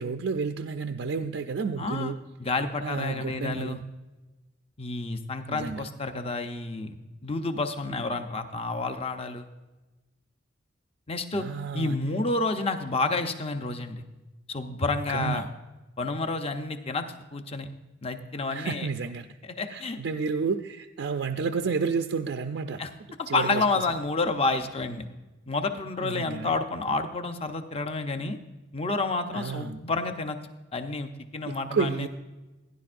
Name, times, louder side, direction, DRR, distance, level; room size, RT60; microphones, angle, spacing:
voice 1, 0.0-2.2 2.8-3.8 5.5-5.9 11.3-12.0 15.1-15.5 18.5-19.3 19.7-22.8 23.3-23.6 26.0-26.6 29.3-29.8 31.5-32.1, right 5 dB, 65° right, 6 dB, 0.4 m, -31 dB
voice 2, 1.8-2.1 2.4-3.8 4.8-7.0 7.2-9.5 11.1-11.5 11.7-14.0 14.5-15.5 16.0-17.7 18.0-18.9 19.4-20.0 22.8-22.9 23.2-25.1 25.5-28.4 28.7-30.4 30.7-32.1, left 3 dB, 30° left, 7 dB, 0.7 m, -29 dB
16.5 x 10.5 x 2.5 m, 1.1 s
head